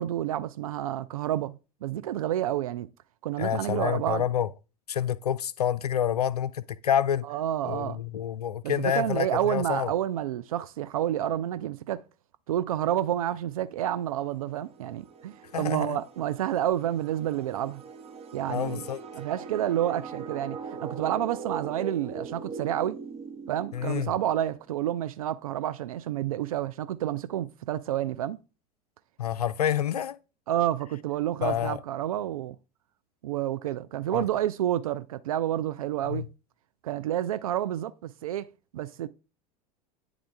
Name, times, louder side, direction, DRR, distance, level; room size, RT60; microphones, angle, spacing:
voice 1, 0.0-2.9 3.2-4.2 7.3-8.0 8.6-12.0 12.5-17.8 18.3-18.8 19.1-23.0 23.5-28.4 30.5-32.6 33.2-36.3 36.8-39.1, right 12 dB, 60° right, 0.5 m, -29 dB
voice 2, 3.4-4.5 4.9-7.3 7.6-9.9 15.5-16.0 18.5-19.0 23.7-24.1 29.2-30.2 31.4-31.8 34.1-34.2 36.1-36.3, left 10 dB, 75° left, 0.4 m, -28 dB
sound 1, 14.0-24.5, right 5 dB, 30° right, 1.2 m, -41 dB
9.8 x 3.6 x 3.5 m
figure-of-eight pair, 80°, 20 cm